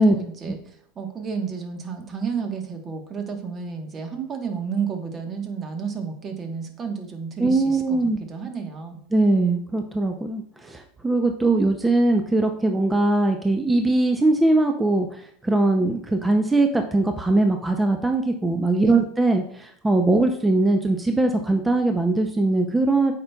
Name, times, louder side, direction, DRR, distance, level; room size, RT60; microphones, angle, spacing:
voice 1, 0.0-8.0 8.3-9.0 18.7-18.9, right 6 dB, 30° right, 4 dB, 1.2 m, -31 dB
voice 2, 7.4-8.2 9.1-23.1, right 2 dB, 10° right, 4 dB, 0.5 m, -21 dB
8.5 x 5.1 x 2.3 m, 0.63 s
supercardioid pair, 120°, 0 cm